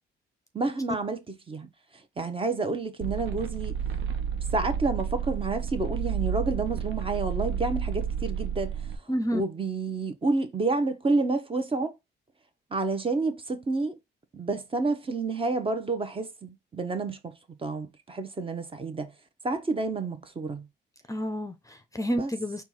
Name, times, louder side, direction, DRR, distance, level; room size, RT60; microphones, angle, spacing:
voice 1, 0.5-1.7 2.2-3.8 4.5-8.7 9.3-11.9 12.7-13.9 14.3-17.3 17.6-19.1 19.4-20.7 22.1-22.3, right 3 dB, 25° right, 0.9 m, -29 dB
sound 1, 3.0-9.0, right 7 dB, 75° right, 0.7 m, -31 dB
voice 2, 9.1-9.4 21.1-22.6, equal, 15° left, 0.6 m, -29 dB
4.4 x 2.4 x 4.2 m
cardioid pair, 90°, 20 cm